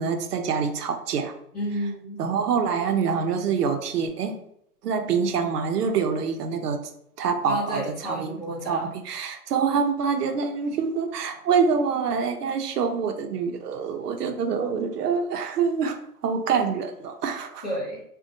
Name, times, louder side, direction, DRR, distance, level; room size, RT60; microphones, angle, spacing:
voice 1, 0.0-1.3 2.2-4.4 4.8-6.8 7.2-17.6, right 6 dB, 80° right, 6 dB, 0.6 m, -26 dB
voice 2, 1.5-2.2 7.4-8.9 17.6-18.0, equal, 30° left, -6 dB, 0.6 m, -31 dB
2.6 x 2.2 x 2.5 m, 0.73 s
hypercardioid pair, 170°, 46 cm